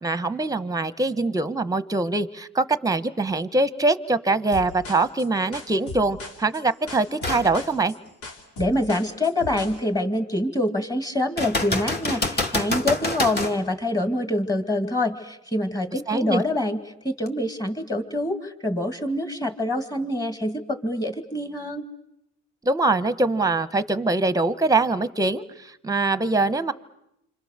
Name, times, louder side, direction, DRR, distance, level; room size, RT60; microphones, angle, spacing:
voice 1, 0.0-7.9 16.1-16.4 22.6-26.7, right 3 dB, 10° right, 14 dB, 1.0 m, -23 dB
sound 1, 4.5-9.8, left 3 dB, 85° left, 2.8 m, -38 dB
sound 2, 7.2-7.5 8.1-8.2 11.4-13.6 17.3-17.4, left 2 dB, 35° left, 2.6 m, -26 dB
voice 2, 8.6-16.8 17.0-21.8, left 1 dB, 10° left, 7 dB, 2.4 m, -25 dB
28.5 x 25.5 x 6.7 m, 0.82 s
cardioid pair, 90°, 30 cm